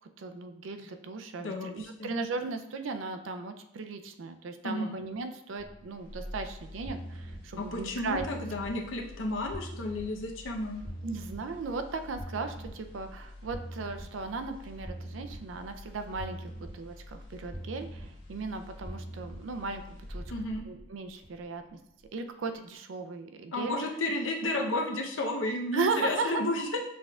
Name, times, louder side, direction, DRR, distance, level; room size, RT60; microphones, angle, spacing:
voice 1, 0.2-8.3 11.0-20.2 20.7-21.6 22.1-23.8 25.7-26.4, right 4 dB, 85° right, 7 dB, 0.4 m, -36 dB
voice 2, 1.4-2.1 4.6-4.9 7.6-10.8 20.3-20.6 23.5-26.8, left 2 dB, 90° left, 1 dB, 0.7 m, -32 dB
sound 1, 5.6-21.7 22.0-22.1, equal, 45° left, 1.6 m, -44 dB
6.2 x 3.6 x 2.3 m, 0.79 s
head